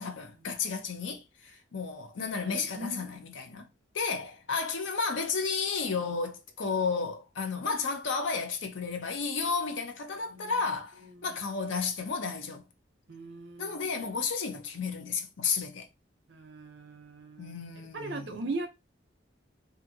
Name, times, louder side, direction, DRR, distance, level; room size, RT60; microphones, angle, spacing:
voice 1, 0.0-3.7 3.9-12.6 13.6-15.9 17.4-18.4, left 5 dB, 80° left, 0.6 m, -32 dB
voice 2, 2.4-3.1 10.3-10.6 11.0-11.4 13.1-13.8 16.3-17.5 17.9-18.7, right 2 dB, 65° right, 0.6 m, -39 dB
2.6 x 2.5 x 2.7 m
head